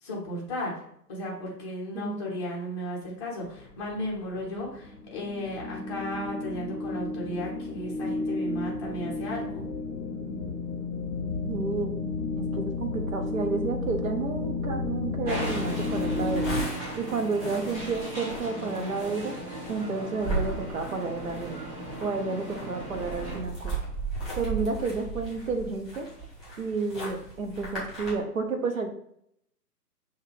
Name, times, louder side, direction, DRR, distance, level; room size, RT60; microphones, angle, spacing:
voice 1, 0.0-0.7 1.1-9.7, left 1 dB, 20° left, -4 dB, 0.7 m, -35 dB
sound 1, 3.4-16.6, left 3 dB, 85° left, 0.8 m, -32 dB
voice 2, 11.5-11.9 12.4-16.5 17.0-19.3 19.7-21.6 22.0-23.7 24.4-26.1 26.6-28.9, right 4 dB, 55° right, 5 dB, 0.9 m, -31 dB
sound 2, 15.2-23.4, right 1 dB, 20° right, 1.3 m, -38 dB
sound 3, 15.4-28.1, right 3 dB, ahead, 1.2 m, -37 dB
5.7 x 2.3 x 3.2 m, 0.71 s
figure-of-eight pair, 125°, 49 cm